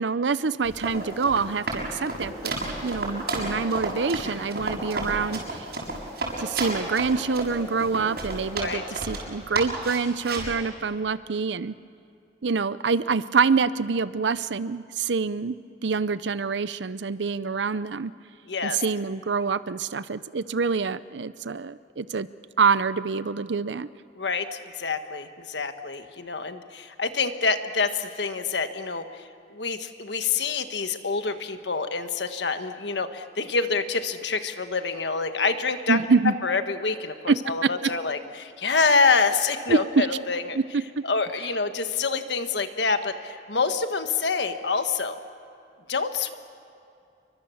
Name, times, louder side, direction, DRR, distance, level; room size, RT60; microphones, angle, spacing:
voice 1, 0.0-2.6 2.8-5.7 6.4-11.7 12.4-15.6 15.8-18.1 18.6-22.3 22.6-23.9 35.9-36.3 37.3-37.4 37.6-37.7 39.7-40.1 40.5-41.0, right 5 dB, 85° right, 16 dB, 0.7 m, -26 dB
Run, 0.7-9.2 9.6-10.5, right 2 dB, 60° right, 6.5 m, -31 dB
voice 2, 18.5-18.8 24.2-29.2 29.5-36.0 36.4-40.6 41.0-45.2 45.9-46.3, left 4 dB, 75° left, 8 dB, 1.4 m, -26 dB
28.5 x 23.5 x 7.1 m, 2.5 s
head